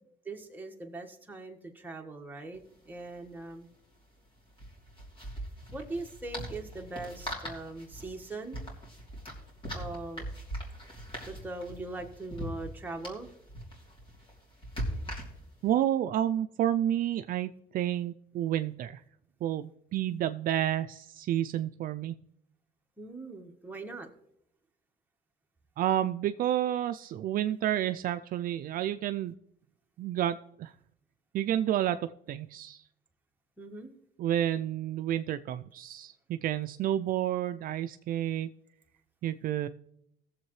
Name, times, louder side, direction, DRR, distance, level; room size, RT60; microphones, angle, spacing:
voice 1, 0.2-2.6 2.9-3.7 5.7-8.7 9.7-10.2 11.3-13.3 23.0-24.1 33.6-33.9, right 2 dB, 10° right, 1 dB, 1.5 m, -41 dB
sound 1, 2.5-2.6 2.8-3.0 4.5-15.7, equal, 30° left, 3.2 m, -41 dB
voice 2, 15.6-19.0 19.4-22.2 25.8-29.3 30.0-30.7 31.3-32.8 34.2-38.5 39.2-39.7, right 11 dB, 55° right, 10 dB, 0.4 m, -30 dB
18.5 x 7.4 x 3.1 m, 0.76 s
cardioid pair, 110°, 17 cm